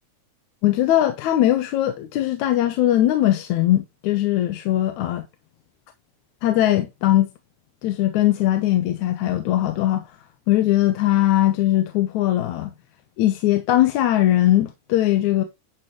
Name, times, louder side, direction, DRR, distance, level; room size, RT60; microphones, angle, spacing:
voice 1, 0.6-5.3 6.4-7.3 7.8-10.1 10.5-12.7 13.2-15.4, left 13 dB, 75° left, 2.2 m, -20 dB
11.0 x 7.2 x 3.1 m
omnidirectional pair, 3.5 m